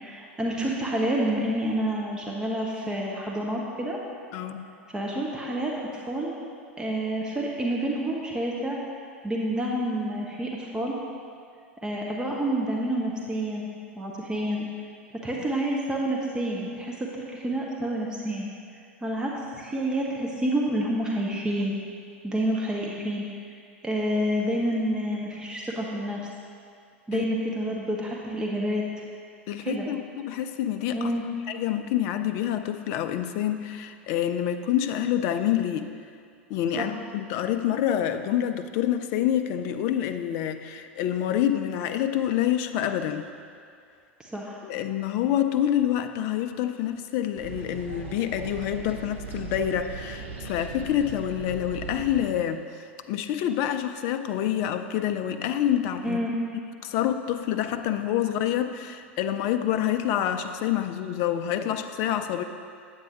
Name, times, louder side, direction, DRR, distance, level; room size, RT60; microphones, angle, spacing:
voice 1, 0.0-4.0 4.9-6.4 6.8-8.8 9.2-11.0 11.8-13.7 14.0-14.7 15.2-18.5 19.0-21.8 22.2-23.2 23.8-26.2 27.1-28.8 29.6-29.9 30.9-31.2 36.8-36.9 44.2-44.6 56.0-56.4, right 1 dB, 10° right, -2 dB, 0.8 m, -28 dB
voice 2, 4.3-4.7 27.1-27.2 29.5-31.1 31.5-35.9 36.5-43.3 44.6-56.2 56.8-62.4, left 11 dB, 45° left, 8 dB, 0.4 m, -27 dB
sound 1, 47.4-52.5, right 5 dB, 60° right, 1.0 m, -39 dB
8.8 x 8.0 x 3.0 m, 2.3 s
figure-of-eight pair, 85°, 7 cm